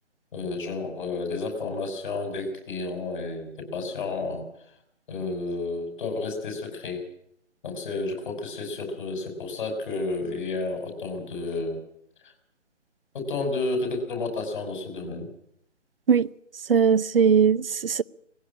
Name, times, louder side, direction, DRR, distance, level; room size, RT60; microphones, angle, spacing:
voice 1, 0.3-4.4 5.1-7.0 7.6-11.8 13.1-15.3, left 3 dB, 40° left, 6.1 m, -31 dB
voice 2, 16.7-18.0, right 6 dB, 50° right, 0.7 m, -20 dB
19.5 x 16.0 x 8.7 m
figure-of-eight pair, 155°, 36 cm